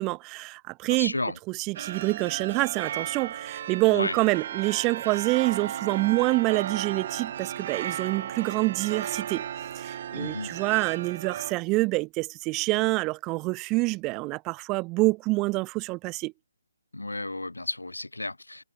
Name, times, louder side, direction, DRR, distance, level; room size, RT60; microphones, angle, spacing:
voice 1, 0.0-1.1 1.6-9.4 9.7-16.3, right 24 dB, 20° right, 2.5 m, -26 dB
voice 2, 0.9-1.4 3.9-4.1 10.1-10.5 16.9-18.6, left 2 dB, 80° left, 6.1 m, -32 dB
sound 1, 1.7-11.5, right 10 dB, 40° right, 6.5 m, -35 dB
figure-of-eight pair, 140°, 0 cm